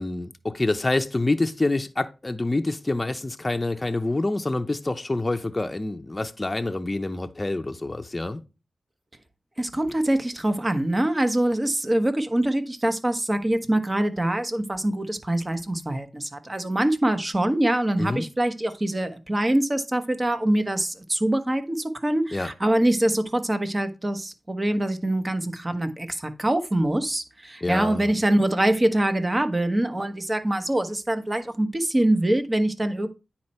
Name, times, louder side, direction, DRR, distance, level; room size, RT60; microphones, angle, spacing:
voice 1, 0.0-8.4 18.0-18.3 22.3-22.5 27.6-28.1, left 2 dB, 30° left, 0.7 m, -27 dB
voice 2, 9.6-33.1, right 1 dB, 25° right, 1.2 m, -24 dB
9.5 x 4.3 x 4.3 m
cardioid pair, 50°, 0 cm